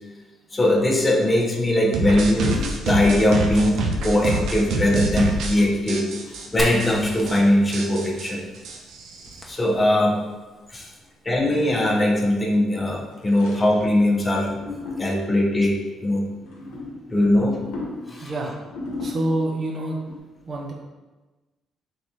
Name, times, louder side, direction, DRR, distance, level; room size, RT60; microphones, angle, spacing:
voice 1, 0.5-6.0 6.5-8.5 9.5-10.2 10.7-10.9 11.2-14.6 15.0-16.2 17.1-17.6 18.1-18.3, left 1 dB, 25° left, 0 dB, 0.9 m, -20 dB
sound 1, 1.9-5.6 5.9-6.5 6.8-6.9 7.2-7.4 7.7-9.4, right 2 dB, 75° right, 0.6 m, -26 dB
sound 2, 2.5-3.7 4.2-4.6 4.9-5.0 6.2-7.3 7.8-8.1 8.4-8.7 9.3-9.4 9.7-9.8 10.0-10.4 10.6-10.7 11.5-12.1 13.1-14.0 14.3-15.4 16.3-19.6 20.1-20.2, left 3 dB, 85° left, 0.8 m, -38 dB
Fire, 6.6-10.3, equal, 5° left, 1.1 m, -36 dB
voice 2, 18.2-18.6 19.0-20.0 20.5-20.7, right 1 dB, 50° right, -1 dB, 0.9 m, -26 dB
3.5 x 3.3 x 4.1 m, 1.2 s
supercardioid pair, 60°, 0 cm